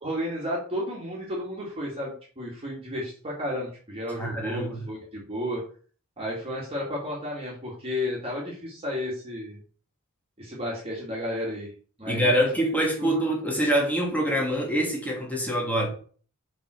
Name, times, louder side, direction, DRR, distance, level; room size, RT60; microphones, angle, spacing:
voice 1, 0.0-5.6 6.2-9.6 10.4-11.7 12.0-12.5 13.0-13.1, left 1 dB, 25° right, 2.7 m, -32 dB
voice 2, 4.1-4.9 12.1-15.9, right 1 dB, 5° left, 2.7 m, -25 dB
6.1 x 5.6 x 6.2 m
head